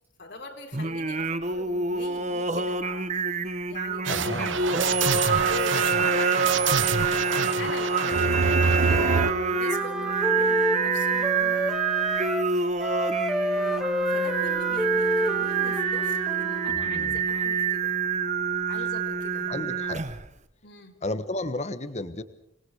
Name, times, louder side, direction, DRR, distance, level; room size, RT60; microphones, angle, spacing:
voice 1, 0.2-4.3 4.8-9.2 9.5-11.7 13.5-18.0 18.7-19.5 20.6-21.0, left 3 dB, 60° left, 3 dB, 3.9 m, -41 dB
Singing, 0.7-20.3, right 5 dB, 35° right, 1.2 m, -27 dB
sound 1, 4.0-9.3, right 5 dB, 75° right, 1.2 m, -26 dB
voice 2, 4.1-4.7 16.7-17.2 19.5-20.0 21.0-22.2, left 2 dB, 35° left, 12 dB, 1.3 m, -33 dB
Wind instrument woodwind instrument, 8.7-12.5 12.8-16.8, equal, ahead, 1.7 m, -29 dB
26.5 x 20.0 x 6.5 m, 0.75 s
head